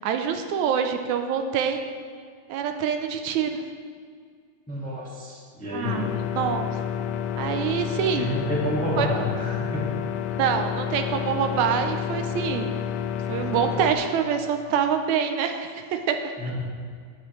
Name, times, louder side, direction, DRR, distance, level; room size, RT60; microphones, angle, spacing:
voice 1, 0.0-1.8 2.5-3.6 5.7-6.1 6.3-6.7 7.4-8.3 9.0-9.1 10.4-12.8 13.3-16.2, right 7 dB, 80° right, 6 dB, 1.9 m, -25 dB
voice 2, 4.7-6.1 8.1-10.0 16.4-16.6, equal, 5° left, -4 dB, 1.0 m, -30 dB
sound 1, 5.8-13.9, left 9 dB, 85° left, 1.5 m, -29 dB
18.5 x 8.3 x 3.2 m, 2.1 s
omnidirectional pair, 3.5 m